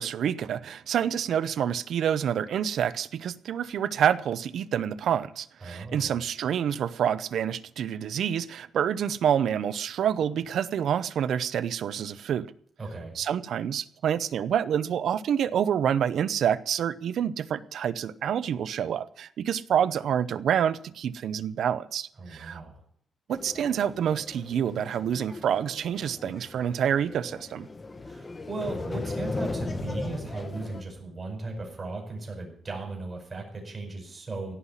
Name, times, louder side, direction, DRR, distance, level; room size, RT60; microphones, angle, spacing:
voice 1, 0.0-12.5 13.2-22.6 23.3-27.7, right 9 dB, 75° right, 0.7 m, -27 dB
voice 2, 5.6-6.2 12.8-13.1 22.2-22.8 28.0-34.5, right 3 dB, 25° right, 5.1 m, -37 dB
sound 1, 23.3-30.8, left 3 dB, 25° left, 1.1 m, -37 dB
17.0 x 5.8 x 9.7 m
wide cardioid pair, 145°, 0 cm